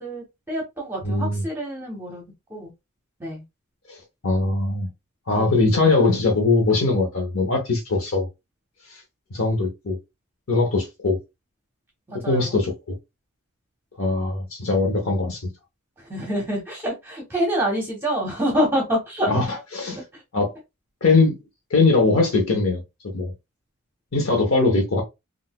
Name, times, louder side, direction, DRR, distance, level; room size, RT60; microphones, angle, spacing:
voice 1, 0.0-2.2 2.5-2.7 3.2-3.4 5.3-5.6 12.1-12.6 16.0-19.5 20.1-20.2, equal, 10° right, 0.9 m, -27 dB
voice 2, 1.0-1.4 3.9-4.9 5.3-8.3 8.9-9.0 9.3-10.0 10.5-11.2 12.3-12.7 14.0-15.4 19.3-20.0 20.3-20.5 21.0-21.3 21.7-22.8 23.1-23.3 24.1-25.0, left 3 dB, 70° left, 0.9 m, -21 dB
3.8 x 2.4 x 2.3 m
head